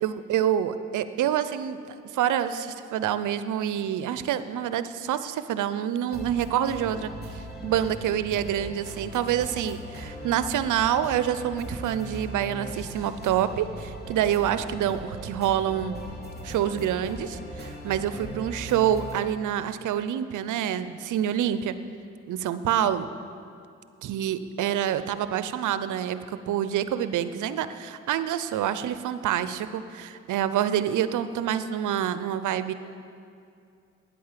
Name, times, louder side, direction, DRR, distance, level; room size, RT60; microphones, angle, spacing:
voice 1, 0.0-7.1 7.3-15.9 16.4-21.8 22.3-23.1 24.0-32.7, right 10 dB, 70° right, 13 dB, 0.7 m, -27 dB
sound 1, 6.1-19.2, equal, 30° left, 2.6 m, -39 dB
9.8 x 8.5 x 7.4 m, 2.5 s
supercardioid pair, 55°, 32 cm